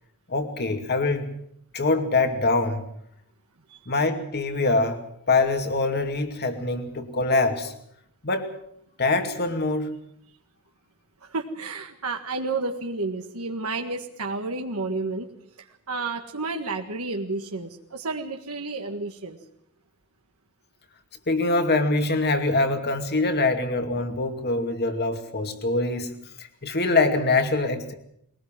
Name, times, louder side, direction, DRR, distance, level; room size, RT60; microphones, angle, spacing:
voice 1, 0.3-1.3 1.7-2.8 3.9-5.0 5.3-7.7 8.2-8.5 9.0-9.9 21.3-26.1 26.4-27.9, left 3 dB, 50° left, 6 dB, 2.5 m, -24 dB
voice 2, 11.2-15.3 15.9-19.4, right 3 dB, 80° right, 3 dB, 1.7 m, -31 dB
21.5 x 19.0 x 7.5 m, 0.71 s
head